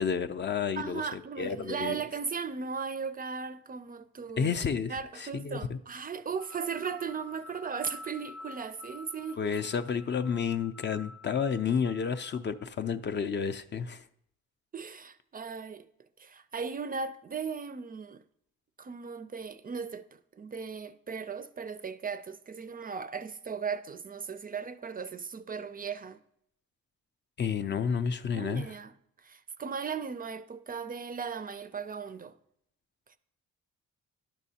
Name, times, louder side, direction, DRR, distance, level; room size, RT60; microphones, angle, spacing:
voice 1, 0.0-2.0 4.4-5.8 9.4-14.0 27.4-28.7, left 6 dB, 35° left, 0.4 m, -31 dB
voice 2, 0.8-4.5 4.9-9.4 14.7-15.9 16.2-18.2 18.8-26.2 28.3-32.3, right 5 dB, 30° right, 0.4 m, -37 dB
sound 1, 6.4-12.7, left 2 dB, 75° left, 0.8 m, -49 dB
11.0 x 6.1 x 2.8 m
cardioid pair, 90°, 30 cm